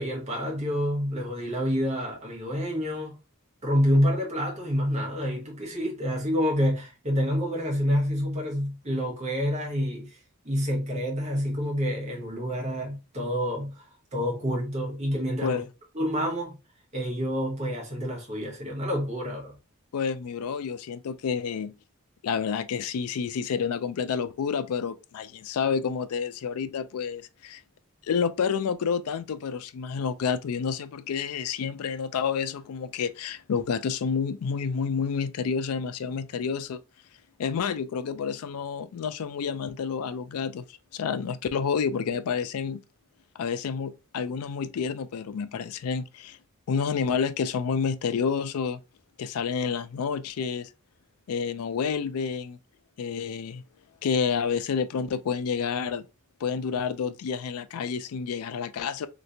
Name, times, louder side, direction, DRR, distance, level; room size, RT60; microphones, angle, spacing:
voice 1, 0.0-3.1 3.6-10.2 10.4-13.8 14.1-15.6 15.9-16.6 16.9-19.6, equal, 30° right, 1.3 m, -28 dB
voice 2, 19.9-21.7 22.2-27.6 28.0-36.8 37.4-40.6 40.9-42.8 43.4-46.4 46.7-48.8 49.2-50.7 51.3-52.6 53.0-53.6 54.0-56.1 56.4-59.1, left 6 dB, 80° left, 0.4 m, -29 dB
3.2 x 3.0 x 2.6 m
head